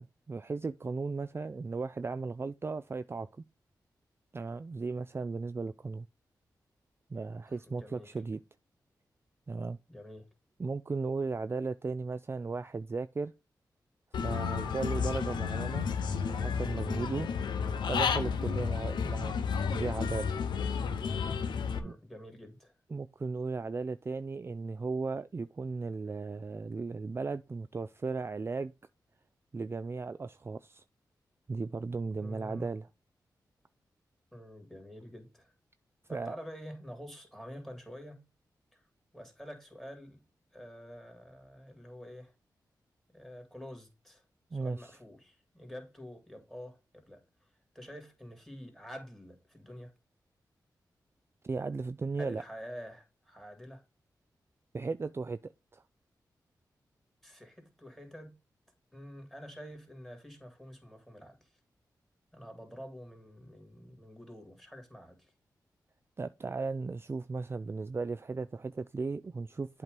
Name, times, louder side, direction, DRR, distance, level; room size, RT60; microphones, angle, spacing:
voice 1, 0.0-3.3 4.3-6.1 7.1-8.4 9.5-9.8 10.6-13.3 14.2-15.9 16.2-17.3 17.9-19.4 19.7-20.3 21.8-21.9 22.9-28.7 29.5-30.8 31.5-32.9 36.1-36.4 44.5-45.0 51.4-52.4 54.7-55.8 66.2-69.8, right 4 dB, 35° right, 0.3 m, -36 dB
voice 2, 7.5-8.1 9.9-10.3 21.7-22.7 32.2-32.7 34.3-35.5 36.1-38.2 38.7-38.9 39.1-40.2 40.5-42.3 43.1-44.2 44.5-49.9 52.2-53.8 57.2-58.4 58.9-61.6 62.3-65.3, equal, 5° left, 2.6 m, -48 dB
Human voice / Bird, 14.1-21.8, left 6 dB, 85° left, 0.7 m, -32 dB
8.0 x 2.9 x 5.2 m
cardioid pair, 45°, 8 cm